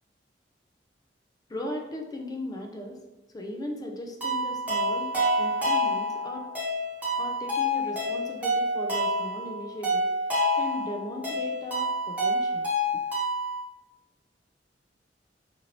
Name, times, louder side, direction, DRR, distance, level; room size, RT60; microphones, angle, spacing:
voice 1, 1.5-3.0 3.3-6.5 7.2-10.1 10.5-13.0, left 1 dB, 20° left, 3 dB, 0.3 m, -37 dB
sound 1, 4.2-13.6, equal, 10° right, 0.9 m, -28 dB
2.9 x 2.6 x 2.8 m, 1.1 s
head